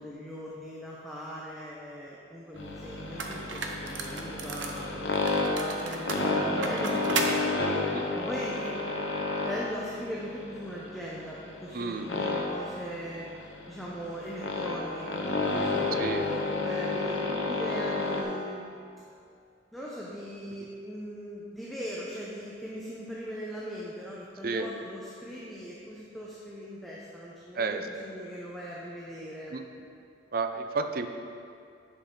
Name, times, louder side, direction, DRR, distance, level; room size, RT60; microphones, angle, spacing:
voice 1, 0.0-5.0 5.6-7.8 8.2-8.8 9.4-13.2 13.7-18.6 19.7-29.6, equal, ahead, -6 dB, 0.7 m, -39 dB
sound 1, 2.6-18.2, left 3 dB, 80° left, 0.9 m, -31 dB
sound 2, 2.6-2.7 3.2-4.8 5.3-7.4, right 4 dB, 85° right, 0.7 m, -34 dB
voice 2, 11.7-12.1 15.9-16.3 24.4-24.7 27.5-28.0 29.5-29.6 30.3-31.1, right 4 dB, 50° right, 7 dB, 0.5 m, -31 dB
10.0 x 5.7 x 3.8 m, 2.4 s
head